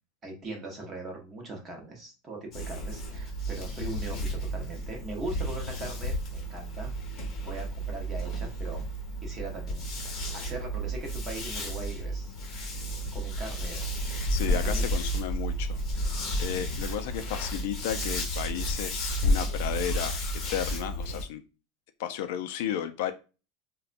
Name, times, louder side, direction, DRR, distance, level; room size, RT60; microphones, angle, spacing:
voice 1, 0.2-6.9 7.4-8.8 9.2-9.9 10.3-12.4 13.1-14.1 14.4-14.9, right 2 dB, 15° right, 1 dB, 0.8 m, -40 dB
sound 1, 2.5-21.2, equal, 25° left, 1.1 m, -32 dB
voice 2, 14.3-15.8 16.4-20.1 20.5-21.4 22.0-23.1, left 10 dB, 55° left, 8 dB, 0.4 m, -33 dB
4.1 x 2.2 x 2.5 m, 0.33 s
supercardioid pair, 180°, 0 cm